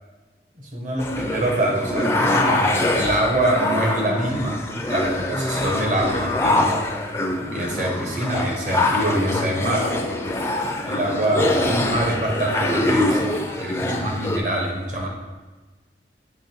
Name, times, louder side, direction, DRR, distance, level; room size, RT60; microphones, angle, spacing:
voice 1, 0.7-4.5 4.9-6.8 7.5-9.9 10.9-13.3 13.6-15.1, right 1 dB, 45° right, -1 dB, 1.1 m, -24 dB
sound 1, 1.0-14.4, left 1 dB, 15° left, 0.4 m, -24 dB
sound 2, 9.1-14.3, left 3 dB, 80° left, 0.4 m, -39 dB
7.1 x 3.0 x 4.4 m, 1.2 s
head